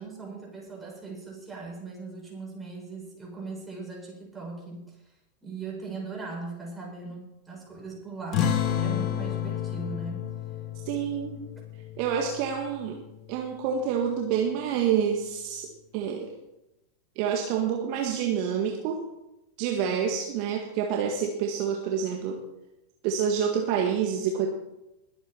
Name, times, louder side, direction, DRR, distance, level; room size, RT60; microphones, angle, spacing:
voice 1, 0.0-5.1 5.4-10.3 19.9-20.1, right 3 dB, 10° right, -2 dB, 6.7 m, -39 dB
sound 1, 8.3-13.3, left 10 dB, 35° left, 2.1 m, -31 dB
voice 2, 10.9-11.4 12.0-13.0 13.3-16.3 17.2-19.1 19.6-22.4 23.0-24.5, right 7 dB, 45° right, 2 dB, 1.8 m, -28 dB
21.0 x 8.7 x 4.5 m, 0.91 s
figure-of-eight pair, 90°, 0 cm